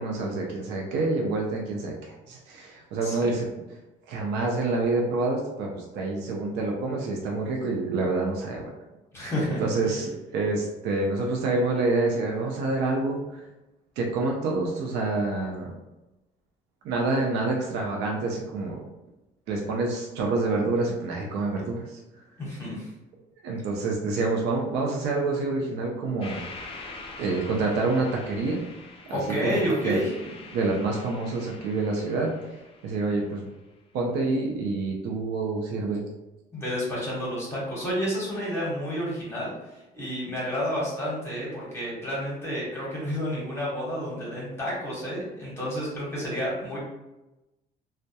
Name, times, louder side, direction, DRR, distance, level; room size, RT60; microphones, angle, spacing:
voice 1, 0.0-3.5 4.1-8.7 9.6-13.4 14.0-15.7 16.8-18.8 19.5-22.0 23.4-26.4 27.2-28.6 29.4-29.6 29.8-30.0 30.5-32.3 32.8-33.5 33.9-36.0, right 3 dB, 85° right, -1 dB, 0.5 m, -27 dB
voice 2, 9.1-9.9 22.4-22.9 29.1-30.1 36.5-46.8, equal, 15° left, -6 dB, 1.0 m, -30 dB
sound 1, 26.2-33.5, left 3 dB, 35° left, 0.4 m, -44 dB
2.2 x 2.1 x 2.7 m, 0.99 s
cardioid pair, 110°, 17 cm